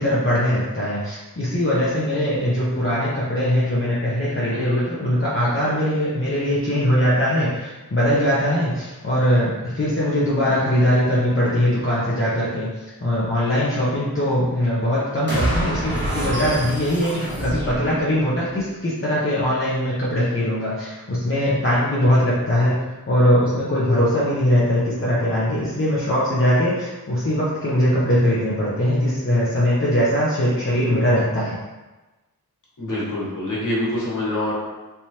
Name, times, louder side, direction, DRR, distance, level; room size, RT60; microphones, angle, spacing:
voice 1, 0.0-22.8 23.1-31.6, equal, 35° left, -9 dB, 0.8 m, -21 dB
voice 2, 4.5-4.8 32.8-34.5, left 1 dB, 55° left, -7 dB, 1.4 m, -26 dB
sound 1, 15.3-18.6, right 1 dB, 30° right, 1.2 m, -27 dB
3.4 x 3.0 x 2.8 m, 1.1 s
wide cardioid pair, 75°, 36 cm